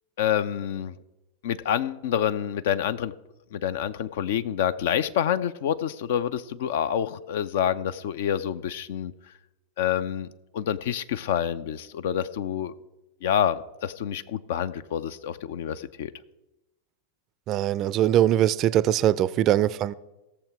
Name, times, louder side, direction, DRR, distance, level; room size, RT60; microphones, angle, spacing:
voice 1, 0.2-1.0 1.4-3.1 3.5-9.1 9.8-12.7 13.2-16.1, left 9 dB, 55° left, 13 dB, 0.6 m, -27 dB
voice 2, 17.5-19.9, right 12 dB, 35° right, 17 dB, 0.5 m, -22 dB
16.0 x 7.2 x 4.7 m, 0.98 s
figure-of-eight pair, 90°, 0 cm